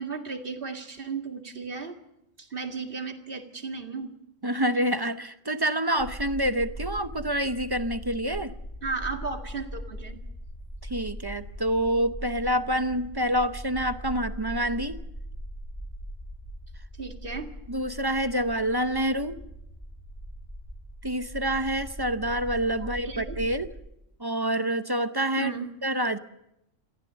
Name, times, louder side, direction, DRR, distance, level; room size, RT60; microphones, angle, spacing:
voice 1, 0.0-2.0 2.4-4.1 8.8-10.2 17.0-17.5 22.8-23.4 25.4-25.7, right 4 dB, 45° right, 4 dB, 2.3 m, -34 dB
voice 2, 4.4-8.5 10.8-15.0 17.7-19.4 21.0-23.7 24.2-25.5 25.8-26.2, right 1 dB, 25° right, 10 dB, 0.7 m, -27 dB
sound 1, 6.0-23.7, equal, 15° left, 3.1 m, -40 dB
28.0 x 15.0 x 7.0 m, 0.84 s
omnidirectional pair, 1.3 m